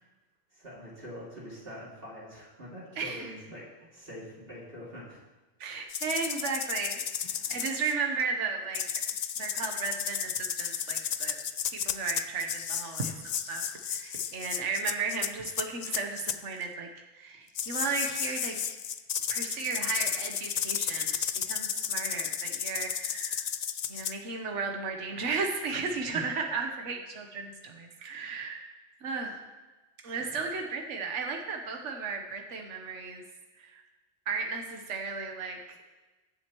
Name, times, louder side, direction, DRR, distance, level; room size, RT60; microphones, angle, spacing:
voice 1, 0.5-3.7 3.9-5.2 7.2-7.6 26.1-26.2 30.0-30.2, equal, 50° right, -6 dB, 2.7 m, -44 dB
voice 2, 3.0-3.3 5.6-7.0 7.5-8.8 9.4-11.4 11.7-16.9 17.1-18.6 19.3-23.5 23.9-28.7 29.0-29.4 30.0-33.2 33.6-33.8 34.3-35.6, right 4 dB, 75° right, 3 dB, 1.4 m, -34 dB
sound 1, 5.9-7.9 8.7-16.4 17.6-24.1, left 8 dB, 80° left, 0.3 m, -33 dB
22.0 x 7.6 x 3.0 m, 1.2 s
omnidirectional pair, 1.3 m